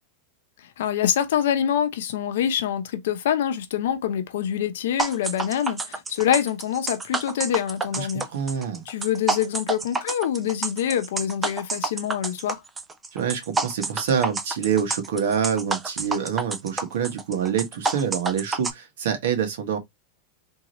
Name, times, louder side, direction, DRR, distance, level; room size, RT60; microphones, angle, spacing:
voice 1, 0.8-8.3 8.9-12.6, left 9 dB, 75° left, 0.8 m, -25 dB
sound 1, 5.0-18.7, right 3 dB, 10° right, 0.4 m, -29 dB
voice 2, 8.0-8.8 13.1-19.8, right 7 dB, 75° right, 1.4 m, -26 dB
3.6 x 2.7 x 3.0 m
supercardioid pair, 175°, 0 cm